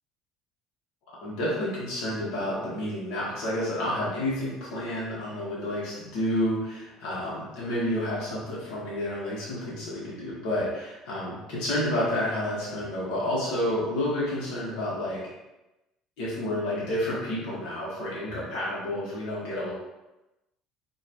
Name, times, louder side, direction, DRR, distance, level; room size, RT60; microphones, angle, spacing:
voice 1, 1.2-15.2 16.2-19.7, left 1 dB, 75° left, -6 dB, 1.6 m, -30 dB
5.5 x 3.1 x 3.1 m, 0.99 s
cardioid pair, 160°, 0 cm